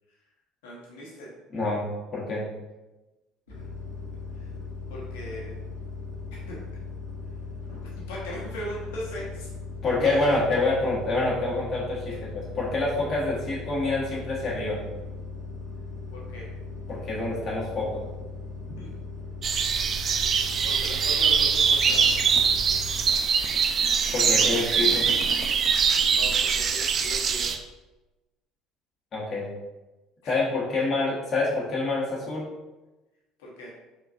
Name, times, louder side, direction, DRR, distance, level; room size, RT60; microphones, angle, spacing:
voice 1, 0.6-1.3 3.5-3.7 4.3-4.5 4.9-5.5 6.3-6.6 7.8-9.5 10.0-10.3 12.1-12.2 16.1-16.5 18.8-19.0 20.2-22.0 25.9-27.5 30.2-30.3 33.4-33.7, equal, 65° left, -4 dB, 1.3 m, -40 dB
voice 2, 2.1-2.4 9.8-14.8 16.9-18.0 24.1-25.0 29.1-29.5 30.2-32.5, left 2 dB, 40° left, -6 dB, 1.3 m, -27 dB
sound 1, 3.5-23.1, left 4 dB, 85° right, 1.3 m, -38 dB
sound 2, 19.4-27.6, right 6 dB, 40° right, 0.4 m, -23 dB
sound 3, 21.6-26.7, left 1 dB, ahead, 0.6 m, -43 dB
4.7 x 3.7 x 2.6 m, 1.1 s
figure-of-eight pair, 60°, 0 cm